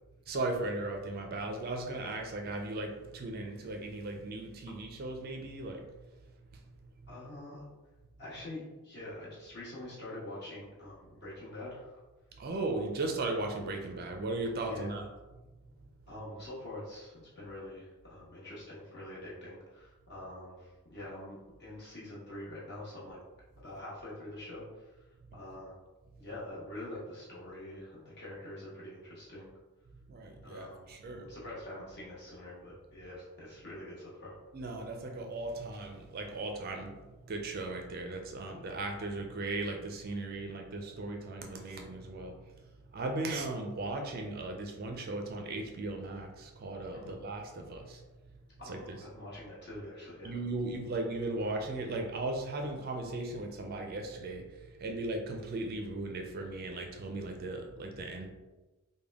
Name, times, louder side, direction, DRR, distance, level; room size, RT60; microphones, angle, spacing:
voice 1, 0.3-5.8 12.4-15.1 30.1-31.3 34.5-37.0 37.3-42.3 42.9-48.0 48.7-49.0 50.2-54.4 54.8-58.3, right 2 dB, 45° right, 3 dB, 0.4 m, -37 dB
voice 2, 7.1-7.7 8.2-12.0 14.4-14.9 16.1-23.2 23.6-24.6 25.3-25.7 26.2-29.5 30.4-30.8 31.2-34.4 46.9-47.2 48.6-50.4, left 1 dB, 50° left, -7 dB, 1.3 m, -45 dB
3.4 x 2.1 x 3.4 m, 1.1 s
head